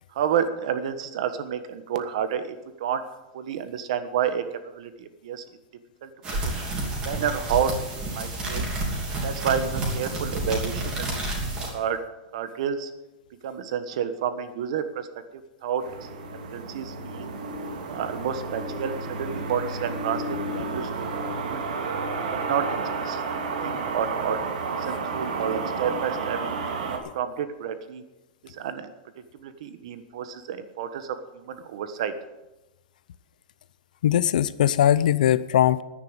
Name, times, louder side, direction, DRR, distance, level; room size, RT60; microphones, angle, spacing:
voice 1, 0.1-3.0 3.3-5.4 6.0-6.1 6.4-6.5 7.0-7.7 8.1-8.7 9.2-11.1 11.7-12.0 12.3-12.9 13.4-15.1 15.6-17.3 17.8-20.9 21.2-21.6 22.3-24.4 24.7-26.4 26.9-28.0 28.4-28.9 29.3-32.1, right 8 dB, 55° right, 10 dB, 1.3 m, -30 dB
sound 1, 6.2-11.7, right 2 dB, 20° right, 3.0 m, -29 dB
sound 2, 15.8-27.0, right 4 dB, 85° right, 2.3 m, -31 dB
voice 2, 34.0-35.8, left 11 dB, 85° left, 17 dB, 0.7 m, -20 dB
10.0 x 9.5 x 8.9 m, 1.0 s
supercardioid pair, 175°, 4 cm